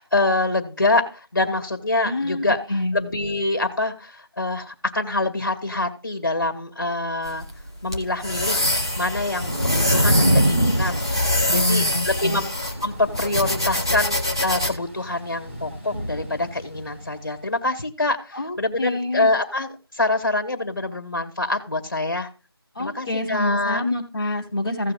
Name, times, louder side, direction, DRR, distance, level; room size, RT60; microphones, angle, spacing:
voice 1, 0.0-2.6 2.9-7.5 7.8-8.7 9.0-12.5 12.8-22.3 22.8-23.8, left 2 dB, 45° left, 6 dB, 2.2 m, -25 dB
voice 2, 2.0-3.0 11.5-12.4 18.3-19.3 22.7-24.9, left 2 dB, 15° left, -8 dB, 2.4 m, -26 dB
sound 1, 7.2-14.7, left 1 dB, 10° right, 0.8 m, -25 dB
Thunder / Rain, 8.6-17.0, right 1 dB, 30° right, 2.9 m, -26 dB
17.0 x 6.7 x 2.3 m, 0.34 s
figure-of-eight pair, 180°, 13 cm